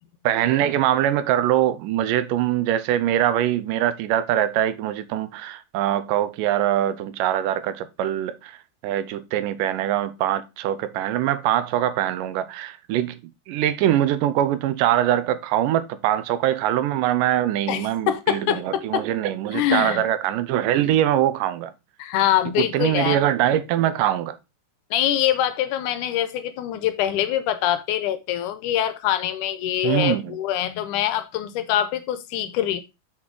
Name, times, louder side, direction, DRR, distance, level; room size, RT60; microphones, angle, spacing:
voice 1, 0.2-8.6 8.8-13.2 13.5-21.7 22.6-24.4 29.8-30.3, right 12 dB, 85° right, 2.2 m, -23 dB
voice 2, 17.7-19.0 19.5-20.0 22.0-23.2 24.9-32.8, left 11 dB, 80° left, 2.0 m, -24 dB
6.2 x 6.0 x 3.7 m
omnidirectional pair, 3.8 m